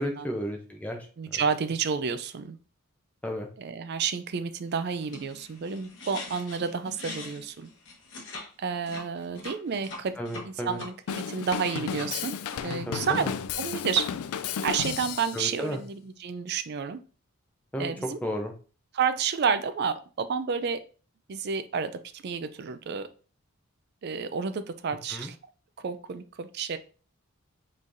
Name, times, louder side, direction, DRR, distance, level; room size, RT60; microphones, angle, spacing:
voice 1, 0.0-1.4 3.2-3.5 10.2-10.8 12.9-13.3 15.3-15.8 17.7-18.5 25.1-25.3, equal, 5° left, 2 dB, 0.6 m, -33 dB
voice 2, 1.2-2.6 3.6-7.7 8.6-10.2 10.4-12.4 12.6-13.3 13.6-14.1 14.6-17.0 17.8-18.2 18.9-20.8 21.3-23.1 24.0-25.4 25.8-26.8, right 6 dB, 45° right, 11 dB, 0.3 m, -30 dB
sound 1, 4.9-8.5 8.8-10.9 11.3-13.2, left 2 dB, 55° left, 1.1 m, -43 dB
Drum kit / Drum, 11.1-15.5, left 8 dB, 75° left, 0.3 m, -33 dB
5.5 x 3.3 x 2.6 m, 0.38 s
head